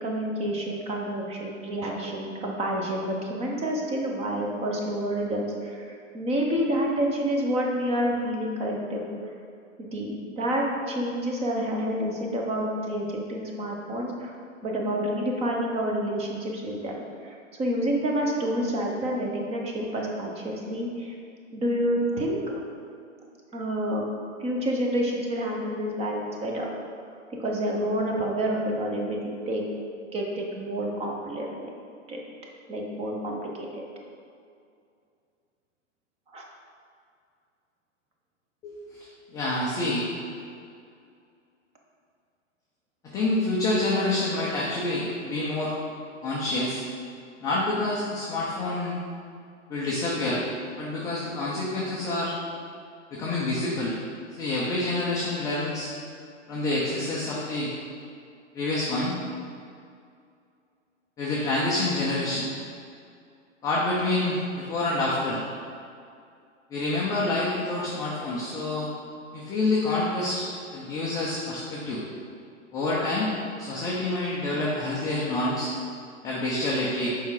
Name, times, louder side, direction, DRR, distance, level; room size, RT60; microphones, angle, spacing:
voice 1, 0.0-9.1 9.8-14.3 14.6-17.0 17.2-21.1 21.5-22.6 23.5-24.1 24.4-26.7 27.4-29.6 30.1-31.7 32.1-32.2 32.7-33.8 36.3-36.4, equal, 15° right, 0 dB, 0.8 m, -28 dB
voice 2, 38.6-40.1 43.0-45.7 46.2-46.8 47.4-48.9 49.7-50.4 50.8-52.3 53.1-54.0 54.4-55.9 56.5-57.7 58.5-59.2 61.2-62.5 63.6-65.4 66.7-68.9 69.3-70.5 70.7-72.0 72.7-73.3 73.6-75.7 76.2-77.1, left 2 dB, 10° left, -6 dB, 0.4 m, -27 dB
6.9 x 4.8 x 3.9 m, 2.4 s
hypercardioid pair, 130°, 39 cm